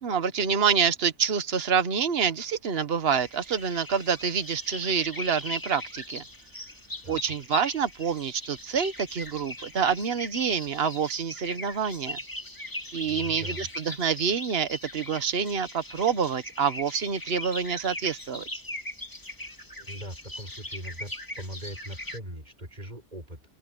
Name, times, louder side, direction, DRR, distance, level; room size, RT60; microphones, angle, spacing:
voice 1, 0.0-6.2 7.1-12.2 12.9-18.5, right 6 dB, 55° right, 1.4 m, -27 dB
sound 1, 3.1-22.2, left 1 dB, 15° left, 2.2 m, -40 dB
voice 2, 13.0-13.7 19.8-23.4, right 1 dB, 35° right, 6.4 m, -40 dB
open air
omnidirectional pair, 1.3 m